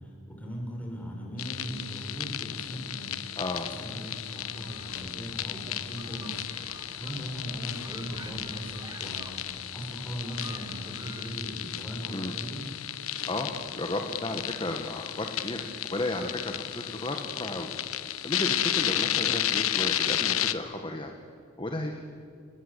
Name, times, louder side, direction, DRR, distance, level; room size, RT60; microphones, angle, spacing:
voice 1, 0.3-3.1 3.7-6.4 7.0-9.4 9.7-12.6, equal, 5° left, -1 dB, 6.3 m, -38 dB
sound 1, 1.4-20.5, left 12 dB, 75° left, 1.2 m, -33 dB
voice 2, 3.4-3.7 12.1-12.4 13.2-17.7 18.2-21.1 21.6-22.0, left 1 dB, 25° left, 4 dB, 1.7 m, -33 dB
sound 2, 4.3-11.3, right 2 dB, 20° right, 1.7 m, -50 dB
29.5 x 21.0 x 8.6 m, 2.4 s
head